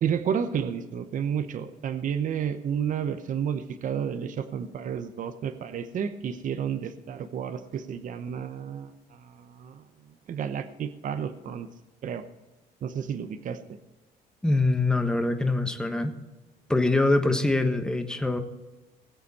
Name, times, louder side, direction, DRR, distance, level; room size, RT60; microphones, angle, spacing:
voice 1, 0.0-9.8 10.3-11.7 12.0-12.2 12.8-13.8, right 8 dB, 50° right, 10 dB, 0.9 m, -31 dB
voice 2, 14.4-16.1 16.7-18.4, left 2 dB, 5° left, 6 dB, 1.2 m, -24 dB
19.0 x 8.1 x 4.3 m, 1.1 s
cardioid pair, 110°, 17 cm